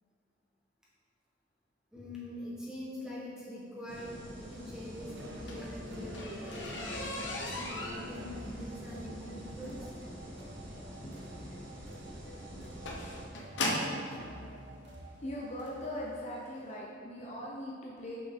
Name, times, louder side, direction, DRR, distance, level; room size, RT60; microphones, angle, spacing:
voice 1, 1.9-9.9 10.3-10.4, left 1 dB, 5° right, -7 dB, 1.3 m, -44 dB
sound 1, 3.9-13.2, equal, 85° right, 1.6 m, -47 dB
sound 2, 5.0-16.0, equal, 65° right, 0.7 m, -49 dB
sound 3, 5.2-14.1 15.0-15.1 15.6-15.9 16.1-16.2 16.6-16.7, left 1 dB, 75° left, 0.9 m, -38 dB
voice 2, 10.3-11.5 12.5-12.7 13.3-13.5 15.0-18.2, left 1 dB, 35° left, -4 dB, 0.7 m, -42 dB
6.1 x 5.9 x 3.7 m, 2.4 s
head